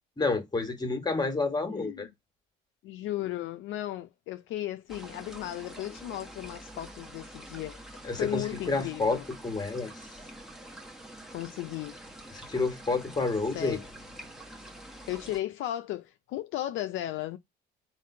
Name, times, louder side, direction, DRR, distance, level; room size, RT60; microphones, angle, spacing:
voice 1, 0.2-2.1 8.0-10.1 12.3-13.8, left 3 dB, 20° left, 1.3 m, -29 dB
voice 2, 1.7-2.1 2.8-7.8 8.2-9.2 11.3-11.9 13.5-13.9 15.1-17.4, left 14 dB, 70° left, 0.4 m, -35 dB
sound 1, 4.9-15.4, right 1 dB, ahead, 1.0 m, -46 dB
3.6 x 2.6 x 4.2 m
supercardioid pair, 75°, 21 cm